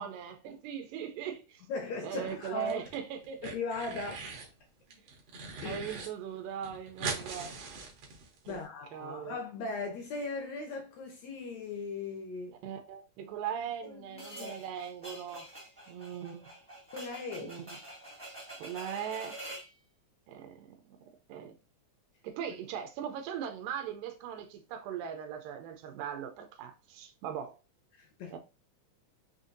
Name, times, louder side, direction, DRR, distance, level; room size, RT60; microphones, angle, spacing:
voice 1, 0.0-1.6 2.0-3.5 5.6-7.5 8.5-8.6 8.9-9.4 12.6-15.5 15.9-16.5 17.4-17.8 18.6-19.4 20.3-21.5 22.2-27.6 28.3-28.4, right 8 dB, 85° right, 2.2 m, -40 dB
voice 2, 1.7-2.9 3.4-4.2 5.6-5.8 8.5-12.6 13.8-14.5 16.9-17.5 28.0-28.4, left 3 dB, 75° left, 1.7 m, -38 dB
sound 1, 2.3-3.0 3.2-4.5 4.9-6.1 6.4-6.5 6.6-8.6, right 4 dB, 65° right, 1.6 m, -41 dB
sound 2, 14.2-19.7, right 1 dB, 5° left, 0.6 m, -47 dB
5.6 x 2.7 x 2.5 m
omnidirectional pair, 3.9 m